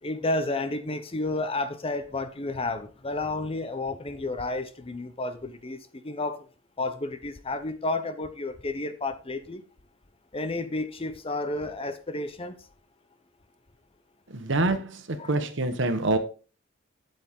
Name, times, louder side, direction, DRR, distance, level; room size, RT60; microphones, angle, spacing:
voice 1, 0.0-6.5 6.8-9.6 10.3-12.6 15.2-15.3, left 2 dB, 30° left, 0.8 m, -31 dB
voice 2, 14.3-16.2, right 2 dB, 65° right, 1.3 m, -26 dB
8.4 x 8.0 x 3.6 m
head